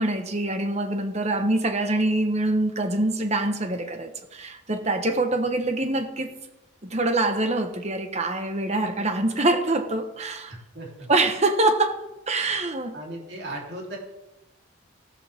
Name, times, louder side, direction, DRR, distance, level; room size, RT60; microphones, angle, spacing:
voice 1, 0.0-6.4 6.8-10.5 11.1-12.9, right 2 dB, 35° right, 6 dB, 1.2 m, -25 dB
voice 2, 10.5-11.1 12.9-14.0, right 1 dB, 55° right, -2 dB, 3.8 m, -37 dB
15.0 x 13.5 x 3.7 m, 0.98 s
head